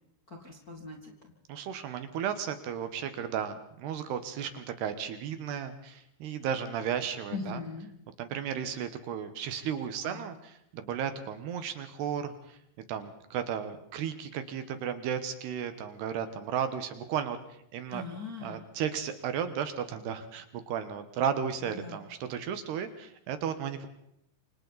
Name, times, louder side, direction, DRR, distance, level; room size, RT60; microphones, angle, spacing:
voice 1, 0.3-1.1 7.3-7.9 10.0-10.3 17.9-18.6 21.7-22.0, left 4 dB, 30° left, 0 dB, 1.9 m, -40 dB
voice 2, 1.5-7.6 8.2-12.6 12.9-17.4 17.7-18.0 18.4-23.9, right 8 dB, 70° right, 9 dB, 3.2 m, -34 dB
28.0 x 25.0 x 4.2 m, 0.75 s
omnidirectional pair, 5.3 m